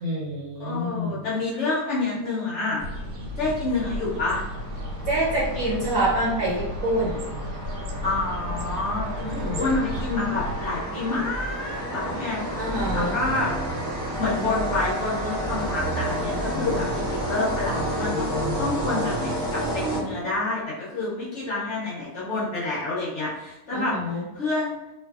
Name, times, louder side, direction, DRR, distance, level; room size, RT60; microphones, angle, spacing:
voice 1, 0.0-1.2 5.0-7.4 9.2-9.6 12.6-13.2 23.7-24.2, right 1 dB, 65° right, -7 dB, 1.0 m, -26 dB
voice 2, 0.6-2.8 3.4-4.4 8.0-12.4 12.9-13.5 14.2-24.8, left 3 dB, 65° left, -7 dB, 0.7 m, -28 dB
sound 1, 2.8-10.7, equal, 90° right, 1.3 m, -34 dB
sound 2, 3.7-20.5, right 1 dB, 20° right, 0.4 m, -31 dB
2.5 x 2.4 x 2.3 m, 0.98 s
omnidirectional pair, 1.7 m